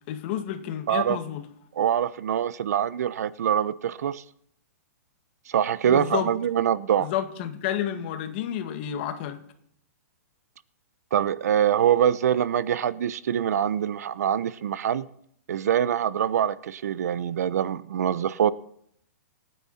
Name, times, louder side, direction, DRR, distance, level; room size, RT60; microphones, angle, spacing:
voice 1, 0.1-1.4 5.8-6.3 7.0-9.4, left 10 dB, 40° left, 1.9 m, -30 dB
voice 2, 0.9-1.2 1.8-4.2 5.5-7.1 11.1-15.1 15.5-18.5, right 9 dB, 75° right, 0.7 m, -24 dB
26.0 x 9.6 x 4.3 m
hypercardioid pair, 160°, 9 cm